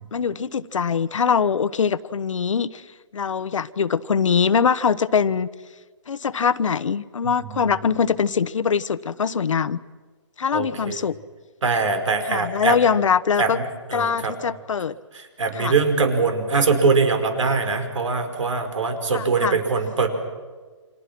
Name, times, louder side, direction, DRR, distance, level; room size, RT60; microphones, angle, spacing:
voice 1, 0.1-2.8 3.1-5.5 6.1-9.8 10.4-11.1 12.3-13.6 13.9-15.0 15.6-15.7 19.1-19.6, left 6 dB, 80° left, 15 dB, 1.1 m, -22 dB
voice 2, 7.2-7.7 10.5-11.1 11.6-12.8 13.4-14.3 15.1-20.1, right 4 dB, 70° right, 7 dB, 5.4 m, -23 dB
30.0 x 26.5 x 6.1 m, 1.4 s
hypercardioid pair, 170°, 16 cm